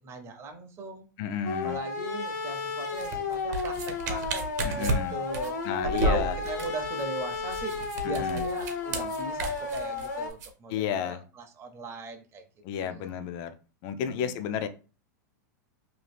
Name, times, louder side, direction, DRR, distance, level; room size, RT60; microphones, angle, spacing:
voice 1, 0.0-1.1 1.6-5.6 5.8-12.4 12.8-13.1 14.1-14.4, right 3 dB, 25° right, 3 dB, 0.6 m, -39 dB
voice 2, 1.2-1.8 4.6-5.2 5.6-6.4 8.0-8.5 10.7-11.2 12.6-13.5 13.8-14.7, left 8 dB, 45° left, 9 dB, 0.4 m, -32 dB
sound 1, 1.4-10.3, left 4 dB, 80° left, 0.7 m, -33 dB
sound 2, 2.9-10.5, right 2 dB, 65° right, 0.8 m, -33 dB
2.7 x 2.3 x 3.4 m, 0.35 s
hypercardioid pair, 120°, 10 cm